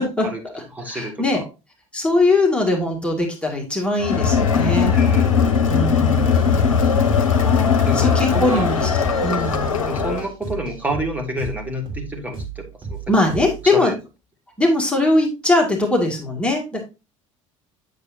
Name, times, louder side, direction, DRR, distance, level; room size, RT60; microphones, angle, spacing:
voice 1, 0.0-1.4 1.9-4.9 5.7-6.8 7.9-8.9 9.2-9.9 13.1-13.9 14.6-16.8, left 2 dB, 5° left, -1 dB, 2.0 m, -21 dB
voice 2, 0.7-1.5 4.9-5.4 7.9-8.7 9.9-13.0 13.3-13.9, right 1 dB, 10° right, 3 dB, 1.9 m, -29 dB
Crowd, 4.0-10.3, left 6 dB, 75° left, 0.7 m, -19 dB
sound 1, 6.1-13.7, right 5 dB, 30° right, 3.0 m, -34 dB
8.1 x 6.8 x 2.6 m, 0.27 s
figure-of-eight pair, 65°, 17 cm